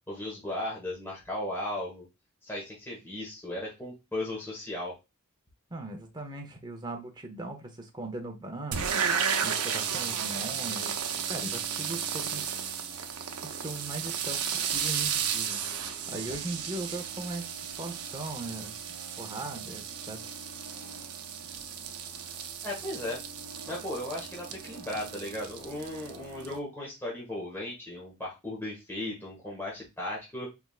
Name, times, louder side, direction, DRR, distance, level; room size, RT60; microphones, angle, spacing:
voice 1, 0.1-2.0 2.4-5.0 22.6-23.2 23.7-30.5, left 1 dB, 10° left, -4 dB, 1.4 m, -36 dB
voice 2, 5.7-11.0 11.3-12.6 13.4-15.6 16.1-18.7 19.2-20.3, right 2 dB, 20° right, 4 dB, 0.8 m, -39 dB
sound 1, 8.7-26.6, right 7 dB, 85° right, 0.7 m, -34 dB
4.6 x 3.5 x 2.4 m, 0.24 s
head